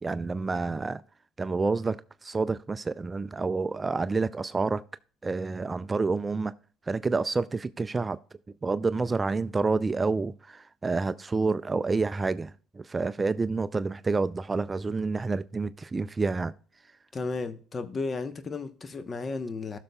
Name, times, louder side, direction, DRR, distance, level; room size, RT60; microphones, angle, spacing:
voice 1, 0.0-1.0 1.4-4.8 5.2-6.5 6.9-8.2 8.6-16.5, right 4 dB, 25° right, 0.4 m, -28 dB
voice 2, 17.1-19.8, left 3 dB, 35° left, 1.0 m, -33 dB
16.0 x 6.6 x 2.3 m
supercardioid pair, 65°, 0 cm